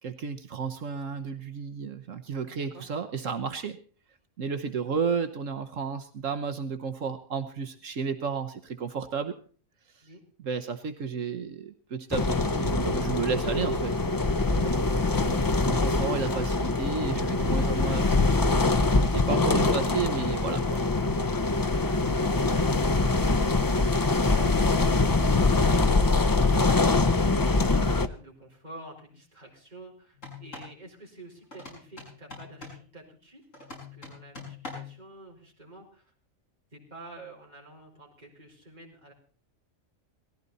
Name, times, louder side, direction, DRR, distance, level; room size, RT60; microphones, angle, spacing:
voice 1, 0.0-3.8 4.4-9.3 9.9-10.0 10.4-14.2 14.4-18.6 19.1-20.8, right 5 dB, 70° right, 8 dB, 1.4 m, -32 dB
voice 2, 2.4-2.9 4.6-4.8 10.0-10.2 24.2-26.9 27.4-33.4 33.7-36.1 36.7-39.1, right 2 dB, 30° right, -2 dB, 4.6 m, -48 dB
sound 1, 12.1-28.1, left 3 dB, 30° left, 0.4 m, -24 dB
sound 2, 30.1-30.8 31.5-32.9 33.5-35.0, left 4 dB, 65° left, 6.6 m, -43 dB
18.5 x 15.0 x 4.1 m, 0.42 s
omnidirectional pair, 1.4 m